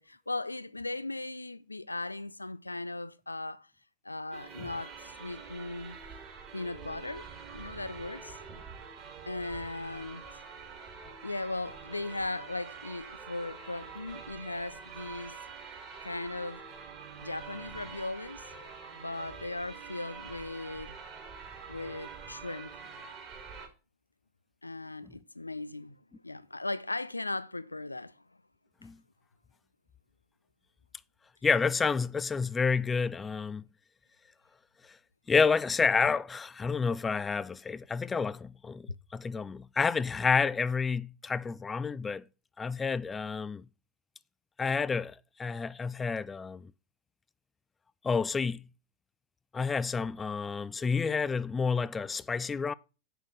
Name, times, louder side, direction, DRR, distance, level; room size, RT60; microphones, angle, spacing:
voice 1, 0.0-3.7 4.0-6.0 6.5-7.3 7.5-8.4 9.3-10.2 11.2-15.4 16.0-16.6 17.2-18.5 18.9-21.0 21.7-22.7 24.6-26.0 26.2-28.1, left 2 dB, 85° left, 0.4 m, -38 dB
sound 1, 4.3-23.7, right 5 dB, 30° right, 2.2 m, -46 dB
voice 2, 31.4-33.6 35.3-42.2 42.6-43.6 44.6-45.1 45.4-46.7 48.0-48.6 49.5-52.7, left 5 dB, 15° left, 0.3 m, -29 dB
6.3 x 6.0 x 6.6 m
figure-of-eight pair, 90°, 0 cm